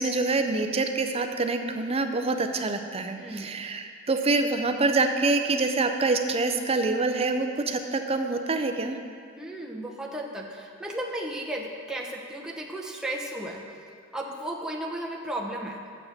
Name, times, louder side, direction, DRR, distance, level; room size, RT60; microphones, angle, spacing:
voice 1, 0.0-9.0, right 3 dB, 30° right, 6 dB, 0.6 m, -26 dB
voice 2, 3.2-3.5 9.4-13.6 14.1-15.8, right 1 dB, 5° right, -2 dB, 0.9 m, -34 dB
7.3 x 7.0 x 6.6 m, 2.2 s
head